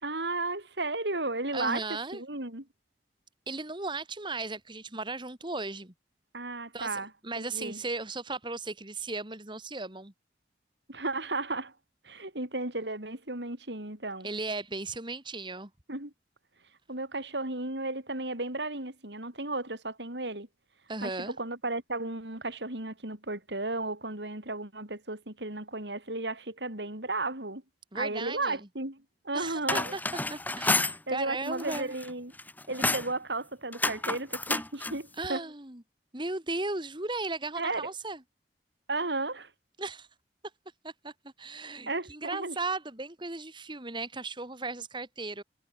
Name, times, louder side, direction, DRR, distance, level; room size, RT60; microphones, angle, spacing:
voice 1, 0.0-1.9 2.1-2.7 6.3-7.8 10.9-11.7 12.0-14.3 15.9-16.1 16.9-20.5 21.0-21.1 21.4-27.6 27.9-29.0 29.2-29.9 31.1-32.3 32.7-35.4 37.6-37.8 38.9-39.5 41.9-42.6, right 2 dB, 80° right, 6.2 m, -34 dB
voice 2, 1.5-2.2 3.5-5.9 6.7-10.1 14.2-15.7 20.9-21.4 27.9-28.6 29.3-31.9 35.2-35.8 36.1-38.2 39.8-40.1 40.8-41.1 41.4-45.4, right 3 dB, 25° right, 2.8 m, -36 dB
sound 1, 29.5-31.0 31.5-32.1 32.4-33.1 33.7-35.0, left 2 dB, 10° left, 2.6 m, -30 dB
head